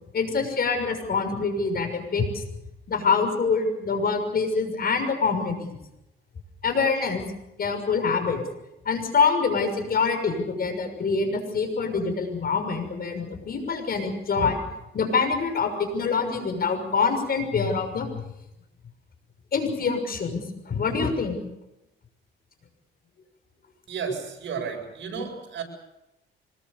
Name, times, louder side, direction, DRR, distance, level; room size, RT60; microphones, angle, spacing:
voice 1, 0.1-2.4 2.9-5.8 6.6-7.2 7.6-8.4 8.8-14.6 14.9-18.2 19.5-21.4 25.1-25.2, left 5 dB, 50° left, 6 dB, 6.5 m, -25 dB
voice 2, 23.9-25.6, right 6 dB, 65° right, 2 dB, 7.7 m, -32 dB
26.0 x 21.5 x 7.0 m, 0.89 s
cardioid pair, 90°, 20 cm